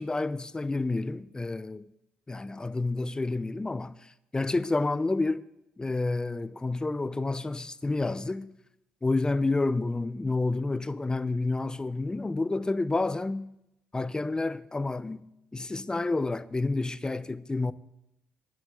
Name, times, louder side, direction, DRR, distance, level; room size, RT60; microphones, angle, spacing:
voice 1, 0.0-1.8 2.3-3.9 4.3-5.4 5.8-8.5 9.0-13.5 13.9-15.3 15.5-17.7, left 3 dB, 20° left, 0.6 m, -29 dB
11.0 x 7.8 x 8.2 m
hypercardioid pair, 50°, 4 cm